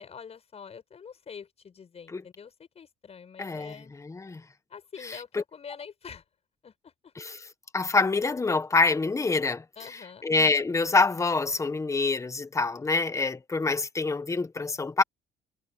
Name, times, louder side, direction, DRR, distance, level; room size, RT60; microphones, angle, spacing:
voice 1, 0.0-3.9 4.7-6.2 6.6-7.1 9.8-10.2, left 6 dB, 40° left, 6.4 m, -45 dB
voice 2, 3.4-3.7 4.0-4.4 5.0-5.4 7.2-7.4 7.7-15.0, left 3 dB, 15° left, 1.4 m, -26 dB
cardioid pair, 110°, 17 cm